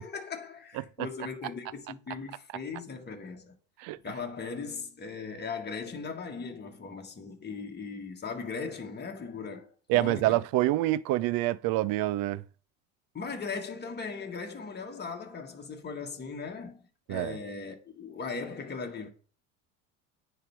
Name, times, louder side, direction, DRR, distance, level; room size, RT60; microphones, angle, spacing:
voice 1, 0.0-3.6 4.0-10.4 13.1-19.1, left 5 dB, 25° left, 1.5 m, -38 dB
voice 2, 9.9-12.4 17.1-17.4, right 16 dB, 55° right, 0.5 m, -26 dB
9.1 x 3.4 x 4.6 m
hypercardioid pair, 85°, 41 cm